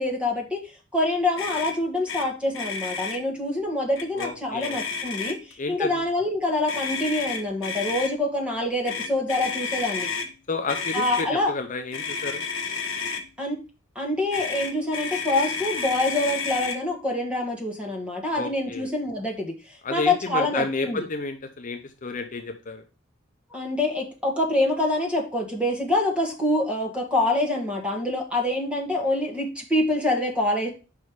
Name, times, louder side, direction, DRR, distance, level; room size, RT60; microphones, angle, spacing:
voice 1, 0.0-10.1 10.9-11.5 13.4-13.6 13.9-21.1 23.5-30.7, left 1 dB, 5° right, 0 dB, 1.6 m, -26 dB
Motor vehicle (road), 1.4-1.7 2.1-2.2 2.5-3.2 4.0-4.3 4.6-5.5 6.7-8.1 8.8-10.3 10.7-11.3 11.9-13.2 14.3-16.8, left 5 dB, 70° left, 1.1 m, -31 dB
voice 2, 4.2-4.8 5.6-5.9 10.5-12.4 18.4-18.9 19.8-22.8, left 3 dB, 40° left, 6 dB, 0.7 m, -31 dB
5.4 x 4.8 x 4.9 m, 0.32 s
head